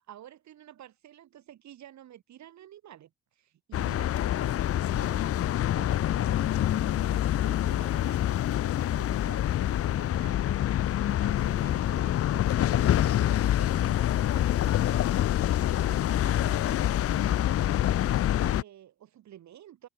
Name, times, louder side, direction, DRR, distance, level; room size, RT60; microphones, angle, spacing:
voice 1, 0.1-17.6 18.4-19.9, right 11 dB, 65° right, 1.6 m, -51 dB
sound 1, 3.7-18.6, left 12 dB, 50° left, 0.5 m, -26 dB
cardioid pair, 90°, 30 cm